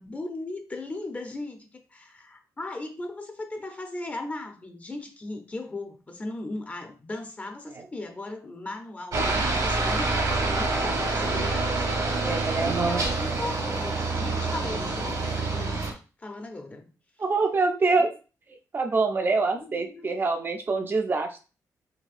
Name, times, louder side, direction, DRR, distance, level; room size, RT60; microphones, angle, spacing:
voice 1, 0.0-11.9 12.6-15.8 16.2-16.9 19.5-20.2, left 2 dB, 20° left, 5 dB, 0.6 m, -37 dB
Aircraft, 9.1-15.9, right 3 dB, 65° right, 1.0 m, -27 dB
voice 2, 12.2-13.0 17.2-18.1 18.7-21.4, right 3 dB, 35° right, 4 dB, 0.5 m, -25 dB
4.1 x 2.7 x 2.5 m, 0.34 s
cardioid pair, 125°, 6 cm